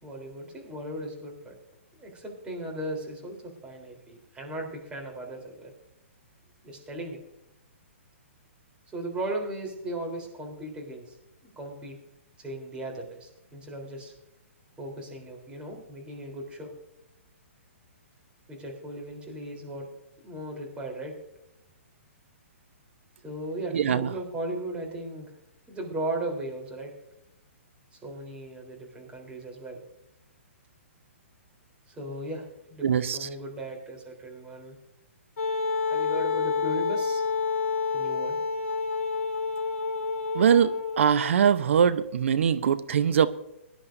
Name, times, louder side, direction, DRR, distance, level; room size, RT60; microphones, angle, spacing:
voice 1, 0.0-1.5 2.0-5.7 6.6-7.2 8.9-11.2 11.4-12.0 12.4-14.1 14.8-16.7 18.5-19.9 20.2-21.1 23.2-25.3 25.7-26.9 28.0-29.8 31.9-34.8 35.9-37.2 37.9-38.4, right 1 dB, 15° right, 0 dB, 3.7 m, -37 dB
voice 2, 23.7-24.1 32.8-33.3 40.3-43.3, right 8 dB, 65° right, 13 dB, 0.8 m, -22 dB
Wind instrument woodwind instrument, 35.4-41.3, left 5 dB, 65° left, 1.5 m, -28 dB
22.0 x 10.5 x 2.7 m, 0.88 s
hypercardioid pair, 130°, 7 cm